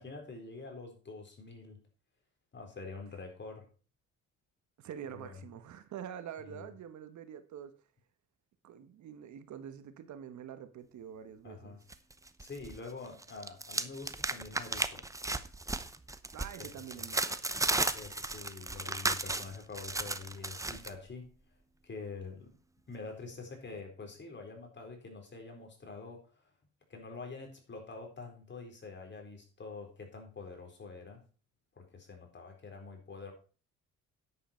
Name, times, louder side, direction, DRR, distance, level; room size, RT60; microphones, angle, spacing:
voice 1, 0.0-1.8 2.5-3.7 5.0-5.3 6.4-6.7 11.4-11.8 12.4-15.0 16.6-16.7 16.9-17.0 17.9-21.4 21.8-22.6 22.9-26.4 26.9-31.2 31.7-33.3, left 4 dB, 35° left, 4.2 m, -46 dB
voice 2, 4.8-7.7 8.6-11.8 16.3-17.5, right 9 dB, 70° right, 1.3 m, -46 dB
sound 1, 11.9-12.8 13.1-20.9, right 2 dB, 10° right, 0.8 m, -35 dB
10.0 x 8.2 x 4.5 m
cardioid pair, 90°, 30 cm